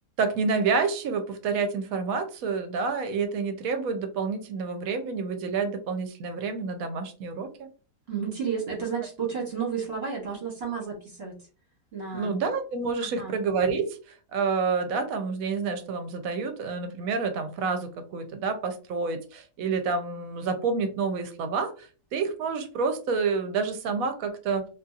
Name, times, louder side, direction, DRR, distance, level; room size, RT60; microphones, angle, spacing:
voice 1, 0.2-7.7 12.1-14.0 14.3-24.7, right 4 dB, 75° right, 7 dB, 1.0 m, -28 dB
voice 2, 8.1-11.3 11.9-12.3 13.0-13.3, right 6 dB, 45° right, -3 dB, 1.2 m, -32 dB
2.7 x 2.6 x 2.3 m, 0.37 s
omnidirectional pair, 1.5 m